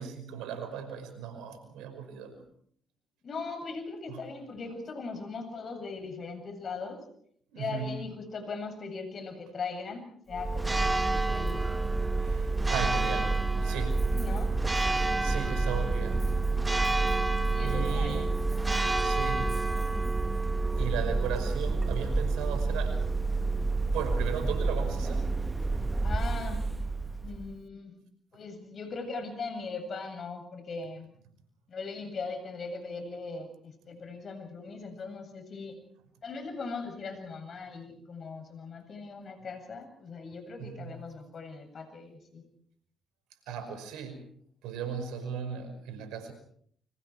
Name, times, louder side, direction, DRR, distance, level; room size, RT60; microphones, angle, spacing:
voice 1, 0.0-2.4 4.1-4.2 7.5-8.0 10.9-11.1 12.1-14.1 14.9-16.3 17.1-18.4 19.0-19.6 20.7-23.1 23.9-25.3 40.6-41.0 43.5-44.2 44.6-46.3, right 7 dB, 80° right, 8 dB, 5.5 m, -37 dB
voice 2, 3.2-7.0 7.6-11.6 14.1-14.5 17.5-18.4 26.0-26.7 27.2-27.9 28.3-31.1 31.7-35.8 36.2-42.4, left 4 dB, 55° left, 7 dB, 7.8 m, -39 dB
Church bell, 10.3-27.6, right 3 dB, 15° right, 1.3 m, -28 dB
30.0 x 26.0 x 4.7 m, 0.63 s
hypercardioid pair, 50°, 0 cm